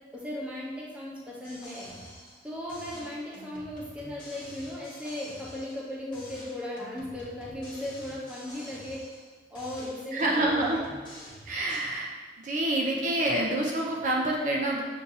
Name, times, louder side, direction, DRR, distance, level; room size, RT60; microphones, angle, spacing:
voice 1, 0.1-1.9 2.4-9.1 9.5-10.8, left 1 dB, 5° right, -5 dB, 0.7 m, -37 dB
sound 1, 1.4-2.4 2.7-5.9 6.1-9.3 9.6-11.9, left 1 dB, 25° left, 1.1 m, -47 dB
voice 2, 10.1-10.8 11.5-12.1 12.4-14.8, right 1 dB, 45° right, -1 dB, 0.4 m, -27 dB
6.6 x 2.6 x 2.6 m, 1.5 s
head